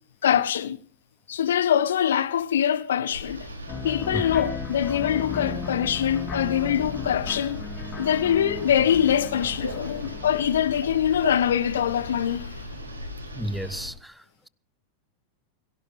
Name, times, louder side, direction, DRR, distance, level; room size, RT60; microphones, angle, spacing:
voice 1, 0.2-0.8 1.3-3.5 3.8-7.6 8.0-12.7, left 9 dB, 65° left, 1.2 m, -24 dB
sound 1, 3.1-13.9, left 1 dB, 80° right, 5.5 m, -38 dB
sound 2, 3.7-12.0, left 5 dB, 30° left, 4.7 m, -36 dB
voice 2, 13.4-14.5, equal, ahead, 0.7 m, -33 dB
22.5 x 16.5 x 3.6 m
figure-of-eight pair, 90°, 0 cm